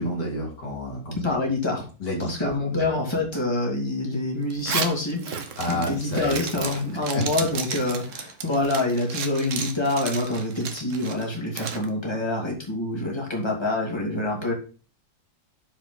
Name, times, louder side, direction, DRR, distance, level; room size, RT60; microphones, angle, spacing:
voice 1, 0.0-1.2 2.0-2.9 5.6-6.4 7.1-7.2, left 1 dB, 60° left, -1 dB, 2.9 m, -29 dB
voice 2, 1.2-1.9 2.2-14.5, left 2 dB, 15° left, -1 dB, 2.2 m, -26 dB
Zipper (clothing), 4.5-11.9, right 6 dB, 50° right, 1.1 m, -33 dB
8.9 x 4.8 x 3.9 m, 0.36 s
omnidirectional pair, 2.1 m